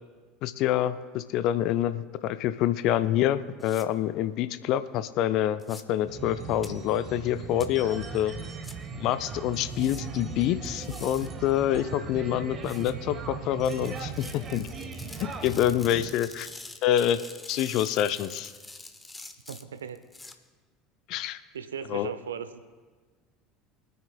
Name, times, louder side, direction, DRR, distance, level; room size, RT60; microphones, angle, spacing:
voice 1, 0.4-8.3 9.0-14.7 15.2-16.5 16.8-17.2 17.5-18.5 21.1-21.4 21.9-22.1, left 11 dB, 50° left, 13 dB, 0.5 m, -27 dB
sound 1, 3.6-3.9 5.6-5.8 6.6-6.7 7.6-7.7 8.6-8.7 9.7-10.0 10.7-11.3 12.6-12.9 13.6-20.3, left 2 dB, 10° left, 0.9 m, -45 dB
sound 2, 6.1-16.1, right 5 dB, 30° right, 1.2 m, -39 dB
voice 2, 19.5-20.0 21.5-22.6, right 7 dB, 75° right, 11 dB, 0.6 m, -37 dB
25.0 x 9.4 x 2.3 m, 1.4 s
figure-of-eight pair, 70°, 0 cm